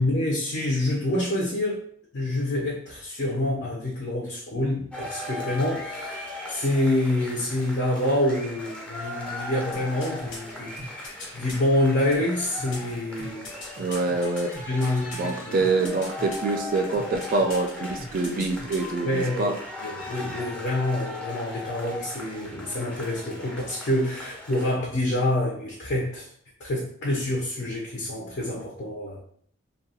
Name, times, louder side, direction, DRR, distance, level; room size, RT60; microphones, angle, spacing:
voice 1, 0.0-1.8 2.1-13.5 14.7-15.6 19.0-19.5 19.8-26.3 26.6-29.2, left 1 dB, 60° left, -2 dB, 0.5 m, -27 dB
sound 1, 4.9-24.8, left 2 dB, 5° left, 0.5 m, -38 dB
sound 2, 9.7-11.6 12.1-15.3 15.6-16.5 16.9-17.7 18.0-18.9 19.2-19.3, left 2 dB, 85° left, 0.9 m, -39 dB
voice 2, 13.8-14.5 15.1-19.5, right 3 dB, 45° right, 4 dB, 0.3 m, -25 dB
2.7 x 2.2 x 2.7 m, 0.62 s
head